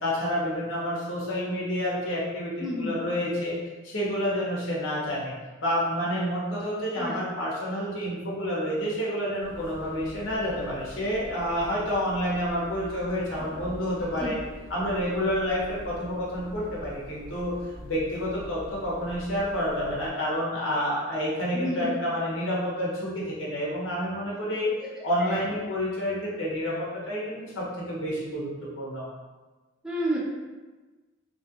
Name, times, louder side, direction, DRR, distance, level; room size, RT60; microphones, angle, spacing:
voice 1, 0.0-3.5 3.8-5.3 5.6-14.4 14.7-17.5 17.8-24.7 25.0-29.0, equal, 90° left, -6 dB, 1.0 m, -29 dB
voice 2, 2.6-2.9 7.0-7.1 14.2-14.3 21.5-21.8 25.2-25.4 29.8-30.2, equal, 5° right, -7 dB, 0.5 m, -30 dB
sound 1, 9.4-20.1, equal, 30° left, 0.8 m, -44 dB
3.0 x 2.5 x 2.8 m, 1.2 s
head